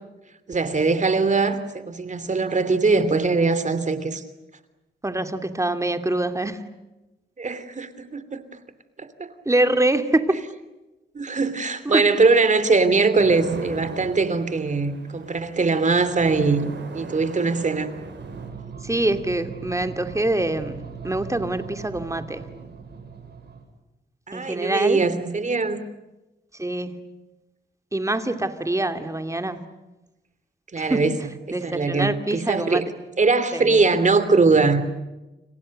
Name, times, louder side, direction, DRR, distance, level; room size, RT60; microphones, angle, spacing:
voice 1, 0.5-4.2 7.4-8.4 9.0-9.3 11.1-17.9 24.3-25.8 30.7-31.1 31.5-32.8 33.2-35.0, right 4 dB, 40° right, 12 dB, 3.0 m, -21 dB
voice 2, 5.0-6.6 9.4-10.4 11.8-12.1 18.8-22.4 24.3-25.0 26.6-26.9 27.9-29.6 30.8-31.0 31.5-32.8 33.5-33.8, right 1 dB, 15° right, 7 dB, 2.7 m, -25 dB
sound 1, 13.2-18.5, right 4 dB, 80° right, 6.9 m, -38 dB
sound 2, 18.2-23.6, right 5 dB, 65° right, 7.8 m, -39 dB
30.0 x 29.0 x 6.7 m, 1.0 s
wide cardioid pair, 100°, 19 cm